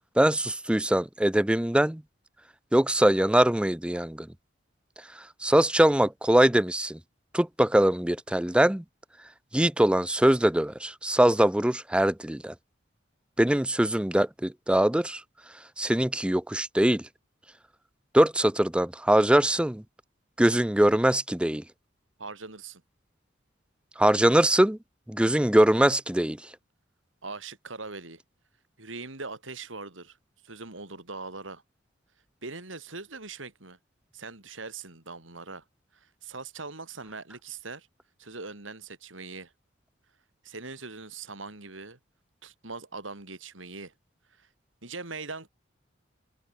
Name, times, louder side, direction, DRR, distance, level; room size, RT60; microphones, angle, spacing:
voice 1, 0.2-2.0 2.7-4.3 5.4-7.0 7.3-8.8 9.5-12.5 13.4-15.2 15.8-17.0 18.1-19.8 20.4-21.6 24.0-24.8 25.1-26.4, right 1 dB, 5° right, 0.5 m, -22 dB
voice 2, 22.2-22.8 27.2-28.2 28.8-30.2 30.4-31.6 32.4-33.8 34.1-35.6 36.2-37.9 38.2-39.5 40.4-42.0 42.4-43.9 44.4-44.5 44.8-45.5, right 3 dB, 85° right, 4.7 m, -41 dB
head